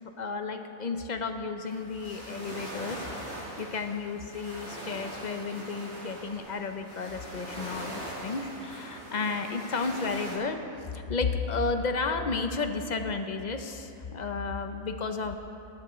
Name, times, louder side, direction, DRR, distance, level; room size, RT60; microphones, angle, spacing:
voice 1, 0.2-15.4, left 4 dB, 50° left, 7 dB, 0.5 m, -33 dB
sound 1, 1.6-10.4, right 1 dB, 85° right, 4.0 m, -41 dB
18.5 x 11.5 x 3.1 m, 2.7 s
omnidirectional pair, 1.4 m